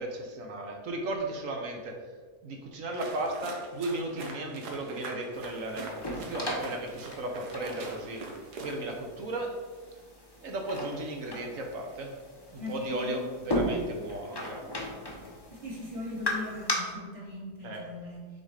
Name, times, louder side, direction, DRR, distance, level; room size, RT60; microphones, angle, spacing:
voice 1, 0.0-2.0 2.4-8.3 8.6-9.6 10.4-12.2 12.5-15.1 17.6-17.9, right 1 dB, 60° right, 2 dB, 1.1 m, -35 dB
sound 1, 2.9-9.0, right 3 dB, 80° right, 1.5 m, -44 dB
sound 2, 5.3-16.7, left 1 dB, 20° left, 0.7 m, -37 dB
voice 2, 12.6-13.2 15.5-18.3, left 2 dB, 25° right, -2 dB, 1.2 m, -39 dB
6.5 x 3.7 x 4.8 m, 1.5 s
omnidirectional pair, 1.7 m